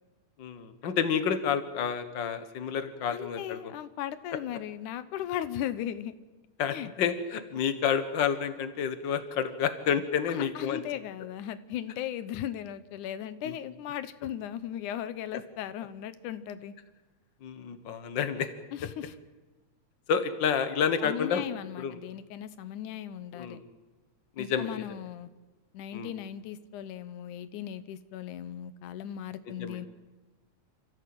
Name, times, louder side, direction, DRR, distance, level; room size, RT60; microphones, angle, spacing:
voice 1, 0.4-3.6 6.6-10.8 13.4-13.6 17.4-18.5 20.1-21.5 21.8-22.0 23.3-23.6 24.4-24.8 25.9-26.1 29.6-29.8, left 7 dB, 45° left, 10 dB, 1.7 m, -29 dB
voice 2, 3.1-6.1 6.7-6.9 10.3-16.7 18.7-19.1 21.0-23.6 24.4-25.3 25.7-29.9, left 11 dB, 85° left, 14 dB, 2.4 m, -37 dB
28.5 x 15.0 x 7.9 m, 1.2 s
omnidirectional pair, 3.5 m